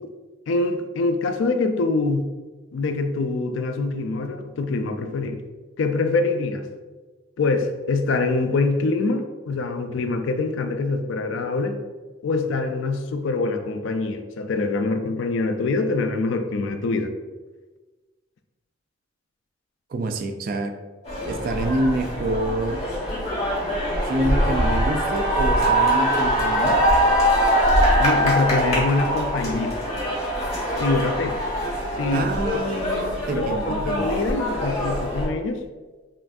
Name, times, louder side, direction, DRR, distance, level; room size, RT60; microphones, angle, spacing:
voice 1, 0.5-2.3 2.7-5.4 5.8-6.6 7.4-11.8 12.2-17.1 28.0-29.8 30.8-31.4 32.0-32.3 33.3-35.6, left 3 dB, 80° left, 7 dB, 0.4 m, -24 dB
voice 2, 19.9-20.7 21.3-22.9 24.0-26.8 32.1-34.1, right 1 dB, 45° right, 7 dB, 0.3 m, -27 dB
sound 1, 21.0-35.3, equal, 35° left, 1.2 m, -23 dB
5.6 x 2.6 x 2.4 m, 1.3 s
head